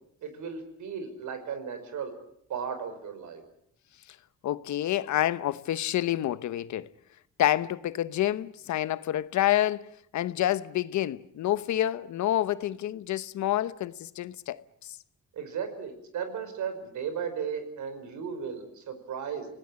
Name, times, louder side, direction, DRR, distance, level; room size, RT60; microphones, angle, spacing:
voice 1, 0.2-2.1 2.5-3.4 15.3-19.5, right 7 dB, 75° right, 5.2 m, -35 dB
voice 2, 4.4-6.9 7.4-15.0, left 13 dB, 70° left, 1.0 m, -28 dB
27.0 x 18.0 x 8.7 m
cardioid pair, 90°, 30 cm